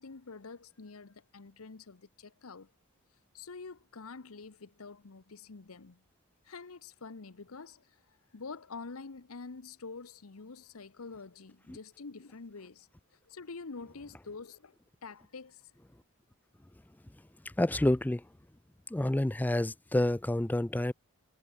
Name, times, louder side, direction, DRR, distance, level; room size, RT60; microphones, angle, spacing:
voice 1, 0.0-2.7 3.3-6.0 6.4-8.0 8.3-12.9 13.3-14.7 15.0-15.7, left 4 dB, 85° left, 1.0 m, -46 dB
voice 2, 17.6-18.2 18.9-20.9, left 1 dB, 10° left, 0.4 m, -28 dB
head